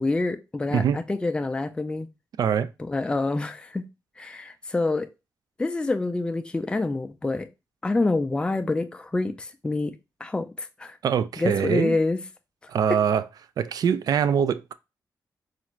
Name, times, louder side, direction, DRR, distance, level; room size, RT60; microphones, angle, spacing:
voice 1, 0.0-2.1 2.8-3.8 4.2-5.1 5.6-7.5 7.8-9.9 10.2-11.0 11.4-12.2 12.9-13.0, left 2 dB, 15° left, 0.3 m, -27 dB
voice 2, 0.7-1.0 2.4-2.7 11.0-12.0 12.7-13.2 13.6-14.7, right 7 dB, 65° right, 0.3 m, -23 dB
4.2 x 2.5 x 3.0 m
cardioid pair, 100°, 7 cm